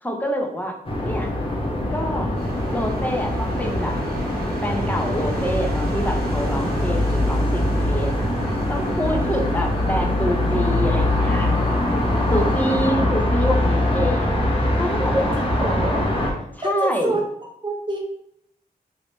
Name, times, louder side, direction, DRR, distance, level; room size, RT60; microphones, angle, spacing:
voice 1, 0.0-1.3 1.9-2.3 2.7-4.0 4.6-8.3 8.7-11.5 12.3-15.3 16.6-17.2, equal, 10° left, 2 dB, 0.6 m, -26 dB
sound 1, 0.8-16.3, left 1 dB, 35° left, 1.0 m, -22 dB
sound 2, 2.3-12.9, right 2 dB, 70° right, 0.9 m, -35 dB
voice 2, 8.4-9.5 12.3-13.0 15.1-15.2 15.5-16.1 16.4-17.2 17.6-18.0, right 1 dB, 30° right, -2 dB, 0.7 m, -28 dB
3.3 x 2.7 x 3.0 m, 0.73 s
cardioid pair, 75°, 16 cm